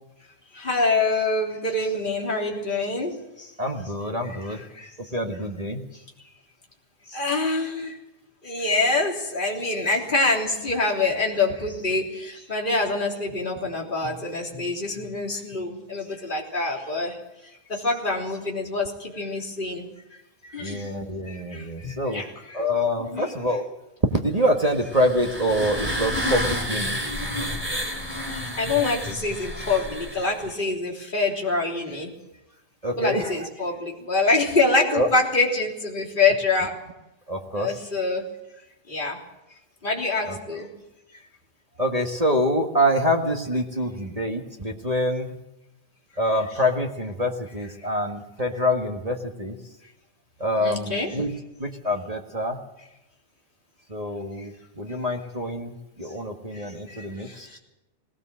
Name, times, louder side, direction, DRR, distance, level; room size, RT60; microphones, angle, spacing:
voice 1, 0.6-3.1 4.8-4.9 7.1-7.9 8.4-17.1 17.7-19.8 20.5-20.8 21.3-22.6 23.0-23.3 28.6-32.1 33.0-36.7 37.5-38.2 38.9-39.2 39.8-40.7 50.6-51.1, left 3 dB, 15° left, -1 dB, 3.3 m, -25 dB
voice 2, 3.6-4.6 5.1-5.8 20.6-22.2 22.5-23.6 24.1-27.0 32.8-33.5 34.9-35.1 37.3-37.8 40.3-40.4 41.8-45.4 46.2-49.6 50.4-51.3 51.6-52.6 53.9-57.6, equal, 25° right, 2 dB, 0.8 m, -26 dB
sound 1, 24.7-30.5, equal, 5° right, 3.2 m, -30 dB
19.5 x 18.0 x 7.6 m, 0.94 s
omnidirectional pair, 3.4 m